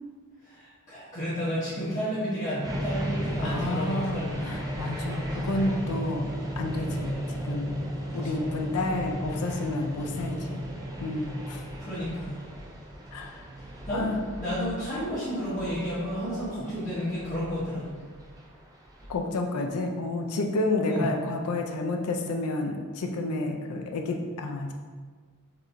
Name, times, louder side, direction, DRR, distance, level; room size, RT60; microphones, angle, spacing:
voice 1, 0.9-4.4 8.2-8.3 11.9-12.4 13.9-14.1 14.4-17.9 20.8-21.1, equal, 35° left, -12 dB, 1.0 m, -31 dB
sound 1, 2.6-19.2, equal, 15° right, 0.4 m, -35 dB
voice 2, 3.4-6.3 6.6-10.6 11.0-11.6 13.1-13.4 13.9-14.2 19.1-24.7, left 2 dB, 85° left, 2 dB, 0.5 m, -30 dB
4.6 x 3.1 x 2.6 m, 1.5 s
head